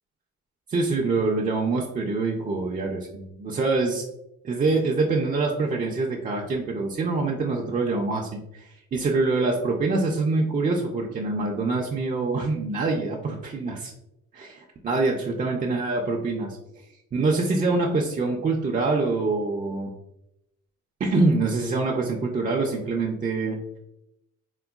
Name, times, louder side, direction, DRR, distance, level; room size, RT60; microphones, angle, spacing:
voice 1, 0.7-4.0 4.4-13.9 14.3-16.6 17.1-19.9 21.0-23.6, right 3 dB, 30° right, -1 dB, 0.4 m, -25 dB
3.7 x 2.1 x 2.2 m, 0.86 s
cardioid pair, 90°, 30 cm